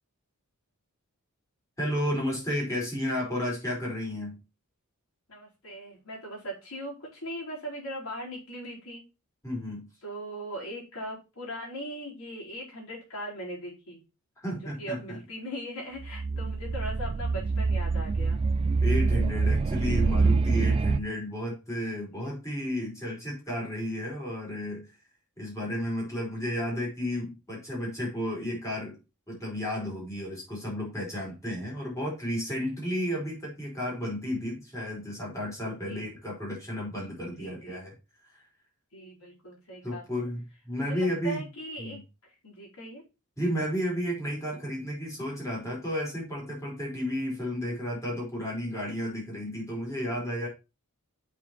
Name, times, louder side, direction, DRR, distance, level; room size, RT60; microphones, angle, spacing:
voice 1, 1.8-4.4 9.4-9.9 14.4-15.2 18.8-24.9 25.4-29.0 29.3-37.9 38.3-38.4 39.8-41.4 41.8-42.0 43.4-50.5, equal, 15° left, -3 dB, 4.8 m, -32 dB
voice 2, 5.3-9.0 10.0-14.0 14.8-18.4 20.5-20.8 22.1-22.3 35.8-36.1 37.4-37.9 38.9-40.3 40.8-42.0 42.4-43.0, equal, 75° left, -3 dB, 4.5 m, -39 dB
sound 1, 16.0-21.0, right 4 dB, 25° right, 0.3 m, -25 dB
7.4 x 6.2 x 4.5 m, 0.28 s
head